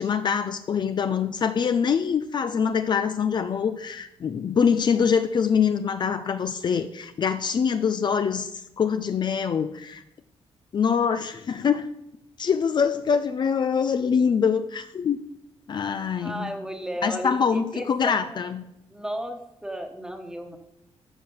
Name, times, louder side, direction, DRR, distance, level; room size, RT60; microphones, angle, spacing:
voice 1, 0.0-10.0 10.7-11.9 12.4-15.2 15.7-16.5 17.0-18.6, left 6 dB, 45° left, 10 dB, 0.6 m, -24 dB
voice 2, 16.2-18.4 18.9-20.6, equal, 5° right, 5 dB, 1.4 m, -34 dB
13.0 x 5.1 x 7.2 m, 0.81 s
cardioid pair, 125°, 11 cm